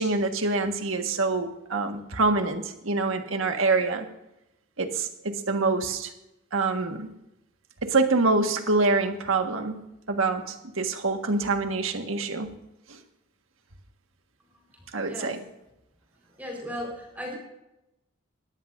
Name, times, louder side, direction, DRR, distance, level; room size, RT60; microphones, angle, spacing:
voice 1, 0.0-4.1 4.8-6.1 6.5-7.1 7.8-9.8 10.1-12.5 12.9-13.0 14.9-15.4, right 3 dB, 75° right, 5 dB, 1.6 m, -26 dB
voice 2, 14.7-15.4 16.3-17.4, left 1 dB, 10° right, -1 dB, 4.4 m, -37 dB
20.5 x 15.0 x 2.6 m, 0.88 s
head